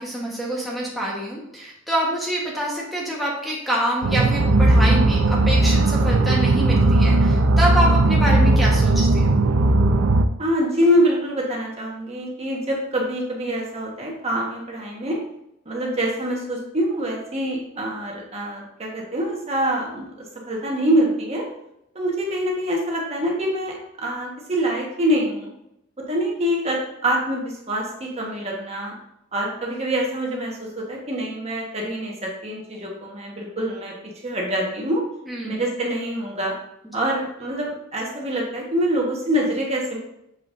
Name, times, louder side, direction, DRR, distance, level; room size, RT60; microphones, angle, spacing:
voice 1, 0.0-9.3 35.3-35.5 36.8-36.9, right 1 dB, ahead, -5 dB, 1.2 m, -26 dB
sound 1, 4.0-10.3, right 2 dB, 85° right, 0.5 m, -17 dB
voice 2, 10.4-15.2 15.6-20.1 20.5-21.4 21.9-25.5 26.1-28.9 29.3-34.0 34.2-35.0 35.4-36.5 36.9-40.0, equal, 30° right, -2 dB, 1.3 m, -25 dB
6.9 x 5.8 x 2.6 m, 0.80 s
head